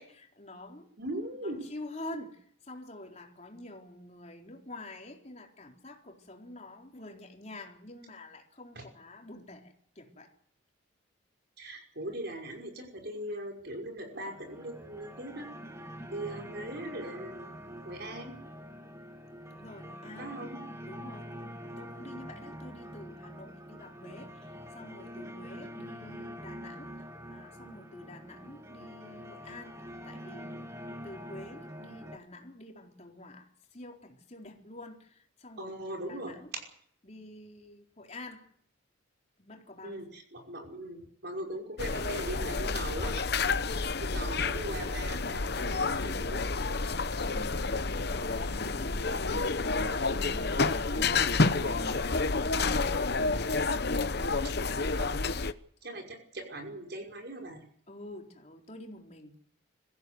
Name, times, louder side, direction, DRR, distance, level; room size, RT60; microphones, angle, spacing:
voice 1, 0.0-0.9 1.4-10.3 15.9-16.2 19.5-20.3 20.8-21.3 21.8-30.7 31.0-36.5 37.0-38.5 39.4-40.1 47.2-47.7 47.9-52.9 57.9-59.4, left 1 dB, 35° left, 4.1 m, -47 dB
voice 2, 1.0-1.6 11.6-15.5 16.1-17.5 17.9-18.4 20.2-20.6 35.6-36.3 39.8-43.3 44.0-46.4 55.0-55.2 55.8-57.6, right 1 dB, 50° right, 5.6 m, -40 dB
sound 1, 14.1-32.2, equal, 15° right, 2.0 m, -45 dB
sound 2, 41.8-55.5, left 3 dB, 50° left, 1.0 m, -29 dB
25.5 x 16.0 x 8.2 m
head